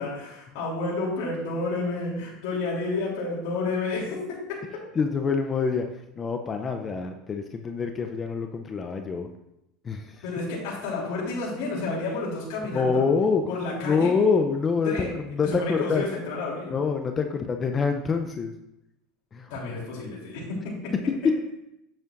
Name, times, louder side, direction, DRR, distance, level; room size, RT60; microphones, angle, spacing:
voice 1, 0.0-4.6 10.2-13.0 13.5-14.1 14.8-15.1 15.4-16.7 19.5-20.9, left 3 dB, 65° left, -5 dB, 3.2 m, -30 dB
voice 2, 5.0-5.9 6.2-9.3 9.8-10.2 12.7-13.4 13.8-16.1 16.7-18.5 19.3-19.5 21.1-21.3, left 5 dB, 30° left, 5 dB, 0.6 m, -25 dB
8.7 x 8.2 x 2.6 m, 0.86 s
supercardioid pair, 100°, 0 cm